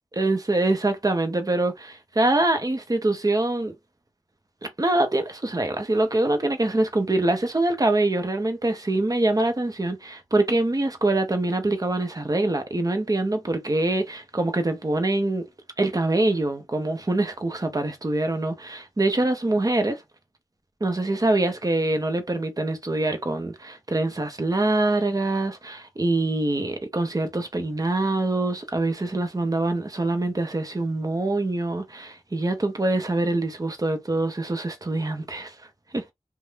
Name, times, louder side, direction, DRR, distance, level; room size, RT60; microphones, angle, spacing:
voice 1, 0.2-3.7 4.8-15.5 15.8-20.0 20.8-35.5 35.9-36.1, right 2 dB, 30° right, 0.8 m, -24 dB
2.6 x 2.2 x 3.3 m
wide cardioid pair, 75°, 13 cm